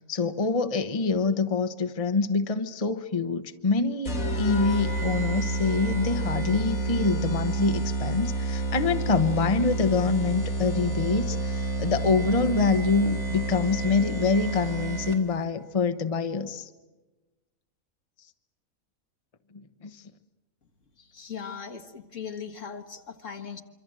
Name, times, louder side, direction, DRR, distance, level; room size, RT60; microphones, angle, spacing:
voice 1, 0.1-16.7 19.5-20.0, left 4 dB, 30° left, 8 dB, 1.1 m, -26 dB
sound 1, 4.1-15.4, right 2 dB, 85° left, 3.2 m, -29 dB
voice 2, 21.0-23.6, left 6 dB, 65° left, 6 dB, 2.0 m, -39 dB
26.5 x 25.0 x 7.7 m, 1.2 s
omnidirectional pair, 1.4 m